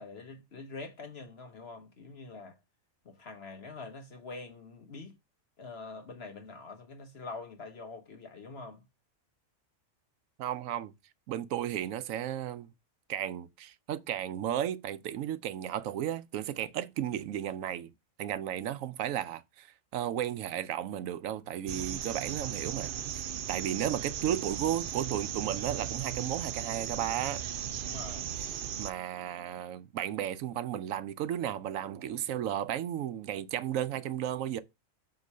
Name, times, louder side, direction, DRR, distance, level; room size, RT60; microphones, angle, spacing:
voice 1, 0.0-2.5 3.0-5.2 5.6-8.8 27.8-28.3, left 3 dB, 50° left, 1.2 m, -45 dB
voice 2, 10.4-10.9 11.3-12.7 13.1-17.9 18.2-27.4 28.6-34.6, right 11 dB, 80° right, 1.0 m, -34 dB
sound 1, 21.7-28.9, right 9 dB, 65° right, 0.5 m, -37 dB
7.7 x 3.1 x 5.4 m
omnidirectional pair, 1.4 m